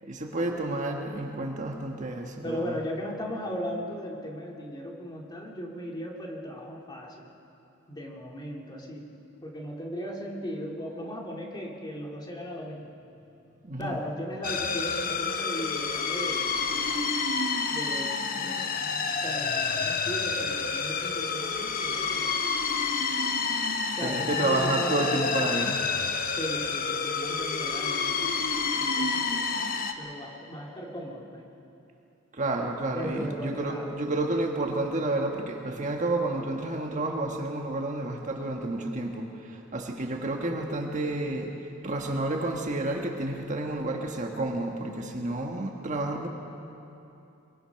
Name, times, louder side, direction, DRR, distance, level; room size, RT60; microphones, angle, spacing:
voice 1, 0.0-2.7 13.6-14.0 24.0-25.9 32.3-46.3, right 2 dB, 35° right, 2 dB, 1.4 m, -30 dB
voice 2, 2.4-7.3 7.9-9.1 9.4-12.9 13.8-17.0 17.7-18.7 19.2-22.4 23.9-25.3 26.3-28.5 28.8-29.7 30.0-31.5 32.9-34.0, equal, 20° left, -1 dB, 2.3 m, -37 dB
sound 1, 14.4-29.9, left 5 dB, 45° left, 1.1 m, -29 dB
23.0 x 22.5 x 5.8 m, 2.9 s
head